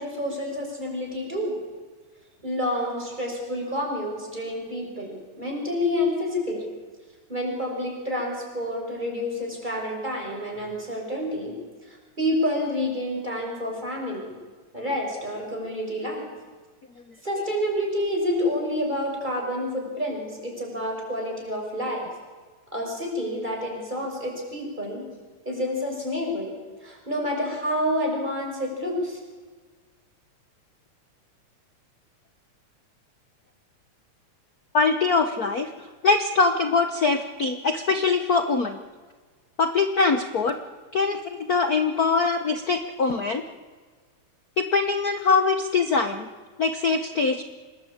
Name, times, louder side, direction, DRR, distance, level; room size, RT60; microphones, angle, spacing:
voice 1, 0.0-1.5 2.4-6.6 7.3-11.5 11.9-14.3 14.7-16.4 17.2-22.1 22.7-25.1 25.4-26.5 26.8-29.2, left 1 dB, 15° right, 0 dB, 6.6 m, -28 dB
voice 2, 34.7-38.8 39.6-40.6 40.9-43.4 44.6-46.3 46.6-47.4, left 4 dB, 85° left, 8 dB, 0.8 m, -23 dB
26.5 x 20.5 x 8.8 m, 1.5 s
omnidirectional pair, 3.4 m